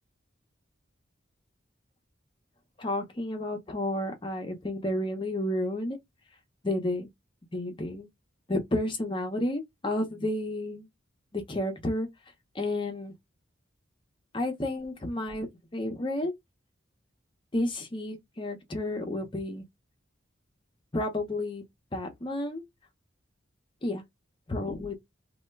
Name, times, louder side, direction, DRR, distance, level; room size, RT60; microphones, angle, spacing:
voice 1, 2.8-6.0 6.6-7.1 7.5-8.1 8.5-10.9 11.3-12.1 12.5-13.1 14.3-16.3 17.5-19.6 20.9-21.6 21.9-22.6 23.8-24.0 24.5-25.0, left 1 dB, 25° left, 0.5 m, -31 dB
2.2 x 2.1 x 3.3 m
head